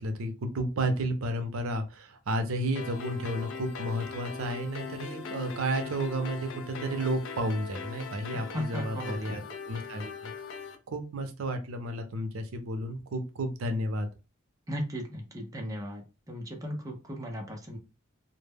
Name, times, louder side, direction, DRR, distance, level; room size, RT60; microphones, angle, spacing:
voice 1, 0.0-10.3 10.9-14.1, right 1 dB, 90° right, 6 dB, 0.5 m, -32 dB
sound 1, 2.8-10.8, left 5 dB, 65° left, 0.4 m, -40 dB
voice 2, 8.3-9.4 14.7-17.8, equal, 15° right, 1 dB, 0.5 m, -37 dB
2.0 x 2.0 x 3.3 m, 0.30 s
head